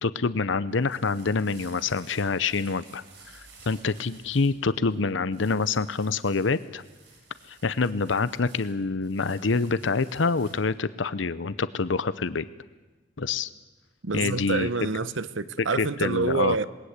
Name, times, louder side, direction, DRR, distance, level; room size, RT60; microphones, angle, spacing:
voice 1, 0.0-3.0 3.3-6.8 7.5-12.4 13.2-13.5 14.1-14.7 15.8-16.6, left 4 dB, 80° left, 0.7 m, -26 dB
sound 1, 0.5-10.8, right 4 dB, 65° right, 4.4 m, -54 dB
voice 2, 14.0-16.7, right 4 dB, 85° right, 1.0 m, -27 dB
27.0 x 20.5 x 8.2 m
head